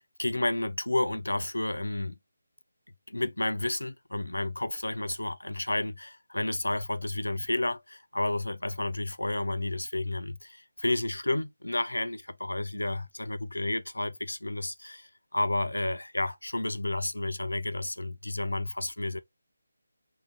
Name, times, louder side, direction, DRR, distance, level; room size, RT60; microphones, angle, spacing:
voice 1, 0.2-2.2 3.1-19.2, left 2 dB, 75° left, 0.4 m, -31 dB
3.8 x 2.5 x 2.4 m
figure-of-eight pair, 155°, 0 cm